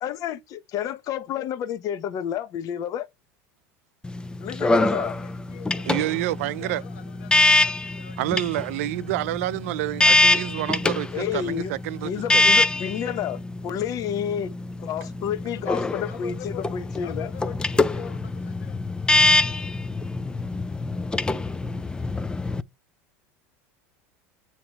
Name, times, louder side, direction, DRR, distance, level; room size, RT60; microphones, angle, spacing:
voice 1, 0.0-3.1 4.4-5.2 11.1-11.7 12.0-14.5 14.8-17.3, left 9 dB, 50° left, 0.9 m, -30 dB
sound 1, 4.0-22.6, left 2 dB, 10° left, 0.5 m, -24 dB
voice 2, 5.1-6.1 6.4-8.3 15.4-16.6 17.0-18.8, left 9 dB, 75° left, 1.4 m, -43 dB
voice 3, 5.9-6.8 8.2-12.5, right 16 dB, 75° right, 0.4 m, -28 dB
7.8 x 3.0 x 4.0 m
hypercardioid pair, 90°, 8 cm